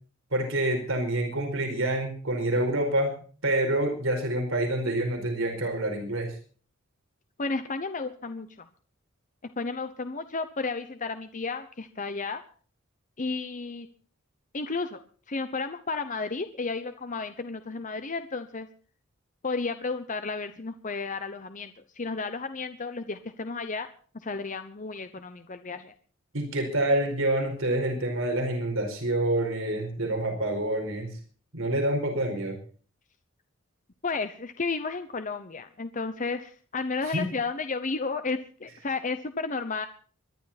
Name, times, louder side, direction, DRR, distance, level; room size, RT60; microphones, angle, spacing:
voice 1, 0.3-3.1 3.4-6.3 26.3-31.1 31.5-32.6 37.0-37.3, right 1 dB, 70° right, 3 dB, 4.6 m, -27 dB
voice 2, 7.4-8.7 9.6-12.4 13.2-13.9 14.5-15.0 15.3-18.7 19.4-23.9 24.2-25.9 34.0-39.9, left 4 dB, 40° left, 9 dB, 0.9 m, -32 dB
24.5 x 11.5 x 4.3 m, 0.42 s
head